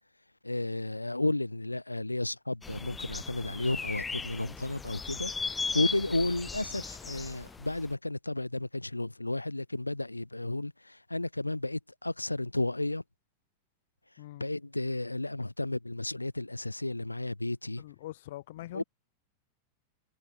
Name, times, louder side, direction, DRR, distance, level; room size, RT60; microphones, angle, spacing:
voice 1, 0.4-5.3 5.7-13.0 14.4-17.8 18.7-18.8, left 2 dB, 85° left, 1.3 m, -32 dB
sound 1, 2.6-7.9, left 4 dB, 15° left, 0.6 m, -37 dB
voice 2, 14.2-14.5 17.8-18.8, left 15 dB, 55° left, 4.8 m, -43 dB
figure-of-eight pair, 90°, 0 cm